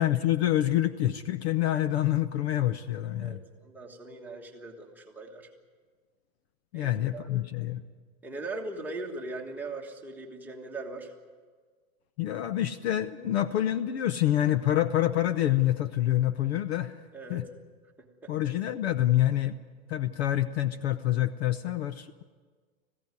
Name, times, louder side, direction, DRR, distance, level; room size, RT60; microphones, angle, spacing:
voice 1, 0.0-3.4 6.7-7.8 12.2-16.9 17.3-17.4 18.3-19.5 19.9-22.2, left 13 dB, 50° left, 13 dB, 0.8 m, -27 dB
voice 2, 3.2-5.5 6.7-7.4 8.2-11.1 17.1-17.4 18.0-18.3, right 2 dB, 5° right, -1 dB, 1.5 m, -40 dB
19.5 x 16.0 x 9.7 m, 1.5 s
supercardioid pair, 155°, 42 cm